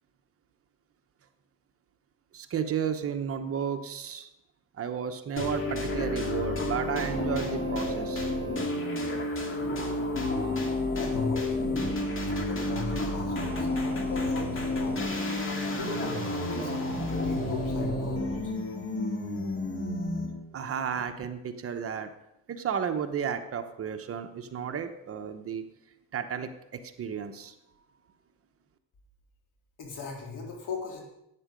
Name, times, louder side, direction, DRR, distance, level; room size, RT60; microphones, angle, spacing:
voice 1, 2.3-4.3 4.8-8.3 20.5-22.1 22.5-25.6 26.1-27.5, right 7 dB, 40° right, 7 dB, 1.0 m, -33 dB
sound 1, 5.4-20.5, left 1 dB, 35° left, 2.3 m, -30 dB
voice 2, 10.9-11.8 12.3-15.1 15.8-18.5 29.8-31.0, left 4 dB, 65° left, 0 dB, 3.7 m, -38 dB
12.5 x 9.3 x 5.2 m, 0.85 s
cardioid pair, 130°, 34 cm